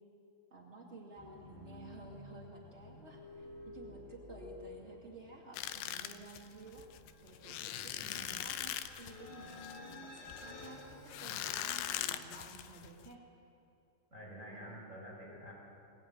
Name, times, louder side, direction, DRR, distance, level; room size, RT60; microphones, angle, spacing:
voice 1, 0.5-6.9 7.2-13.2 14.5-14.8, right 3 dB, 80° right, -1 dB, 0.6 m, -53 dB
sound 1, 1.2-12.0, left 2 dB, 60° left, 5.9 m, -53 dB
sound 2, 5.5-13.1, left 12 dB, 90° left, 2.4 m, -41 dB
voice 2, 8.0-8.4 14.1-15.5, equal, 15° right, -4 dB, 5.8 m, -49 dB
22.5 x 21.0 x 9.4 m, 2.7 s
omnidirectional pair, 5.8 m